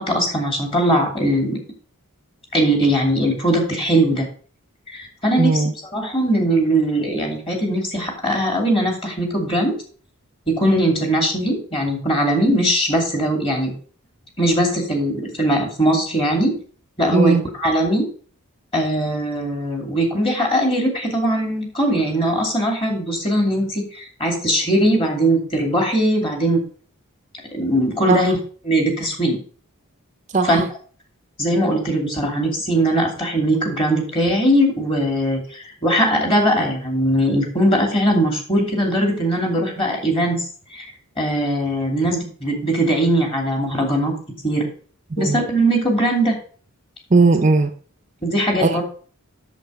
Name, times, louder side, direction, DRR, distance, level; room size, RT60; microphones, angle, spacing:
voice 1, 0.0-1.6 2.5-4.3 4.9-5.6 5.9-9.7 10.5-13.7 14.4-16.6 17.0-18.0 18.7-26.6 27.5-28.4 28.6-29.4 30.4-30.6 31.4-40.4 40.7-40.9 41.2-44.1 44.4-44.7 45.2-46.3 48.2-48.8, right 1 dB, 25° left, 1 dB, 2.8 m, -20 dB
voice 2, 5.4-5.7 17.1-17.4 28.1-28.3 30.3-30.7 45.2-45.4 47.1-47.7 48.6-48.8, right 3 dB, 35° right, 7 dB, 0.5 m, -17 dB
8.2 x 7.2 x 5.1 m, 0.43 s
head